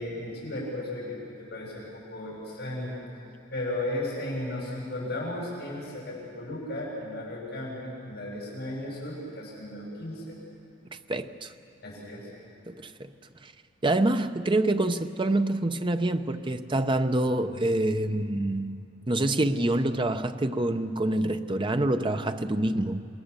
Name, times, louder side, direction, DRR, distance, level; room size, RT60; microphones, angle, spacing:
voice 1, 0.0-2.9 3.5-10.4 11.8-12.3, left 1 dB, 60° left, 7.0 m, -35 dB
voice 2, 11.1-11.5 12.7-13.1 13.8-18.8 19.1-23.1, right 1 dB, 25° right, 0.8 m, -26 dB
28.5 x 21.0 x 6.9 m
head